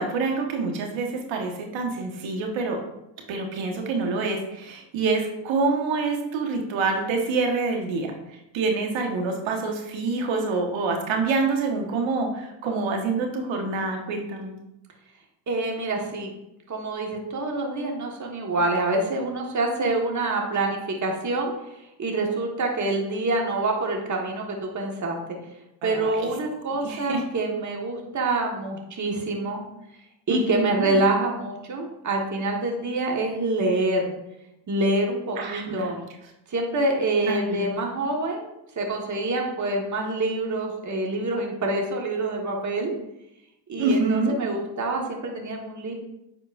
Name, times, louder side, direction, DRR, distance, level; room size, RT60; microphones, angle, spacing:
voice 1, 0.0-2.8 3.3-8.1 8.5-14.5 25.8-26.3 26.8-27.2 30.3-31.0 35.4-35.9 37.3-37.7 43.8-44.3, right 3 dB, 70° right, 2 dB, 1.5 m, -26 dB
voice 2, 15.5-16.3 16.7-21.5 22.0-25.2 25.8-29.6 30.3-34.1 34.7-36.0 36.5-42.9 43.7-45.9, right 2 dB, 35° right, 0 dB, 1.6 m, -26 dB
9.3 x 4.4 x 2.6 m, 0.87 s
supercardioid pair, 65°, 48 cm